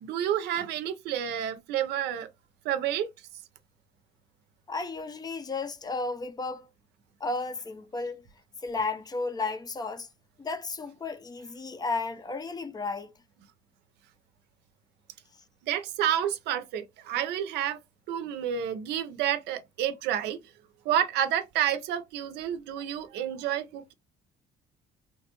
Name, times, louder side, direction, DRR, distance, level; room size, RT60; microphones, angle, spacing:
voice 1, 0.0-2.3 2.6-3.1 15.6-17.8 18.1-20.4 20.8-23.9, right 10 dB, 80° right, 0.6 m, -29 dB
voice 2, 4.7-6.7 7.2-8.2 8.6-10.1 10.4-13.1, left 3 dB, 25° left, 0.4 m, -33 dB
3.3 x 2.2 x 2.8 m
cardioid pair, 110°, 17 cm